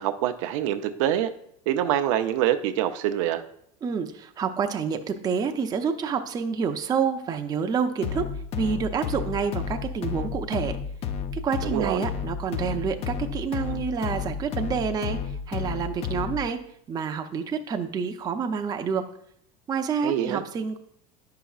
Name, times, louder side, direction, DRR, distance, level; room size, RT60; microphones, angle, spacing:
voice 1, 0.0-1.3 1.7-3.4 11.6-12.0 20.0-20.4, right 11 dB, 75° right, 8 dB, 0.5 m, -25 dB
voice 2, 3.8-10.8 11.3-15.2 15.5-16.6 16.9-19.1 19.7-20.8, right 6 dB, 25° right, 6 dB, 0.5 m, -28 dB
sound 1, 8.0-16.5, left 7 dB, 40° left, 0.5 m, -32 dB
9.9 x 5.7 x 2.4 m, 0.69 s
supercardioid pair, 135°, 16 cm